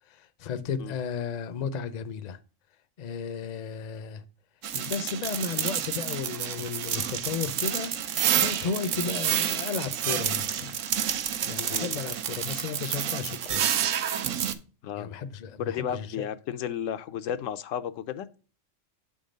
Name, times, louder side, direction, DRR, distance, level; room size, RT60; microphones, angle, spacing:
voice 1, 0.1-2.4 3.0-4.2 4.7-7.9 8.3-10.8 11.4-13.7 15.0-16.2, left 6 dB, 50° left, 0.5 m, -34 dB
sound 1, 4.6-14.5, right 9 dB, 80° right, 1.0 m, -29 dB
voice 2, 15.6-18.3, left 9 dB, 85° left, 1.0 m, -33 dB
7.1 x 3.7 x 5.1 m
omnidirectional pair, 1.3 m